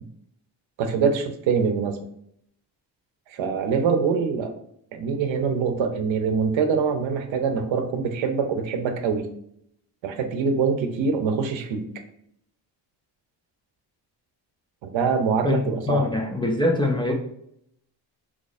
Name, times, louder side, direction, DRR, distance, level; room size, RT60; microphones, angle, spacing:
voice 1, 0.8-2.0 3.3-4.5 4.9-9.3 10.0-11.9 14.8-16.1, right 5 dB, 80° right, 6 dB, 0.7 m, -24 dB
voice 2, 15.4-17.1, left 2 dB, 10° left, 0 dB, 0.3 m, -23 dB
3.0 x 2.4 x 4.0 m, 0.70 s
cardioid pair, 130°, 45 cm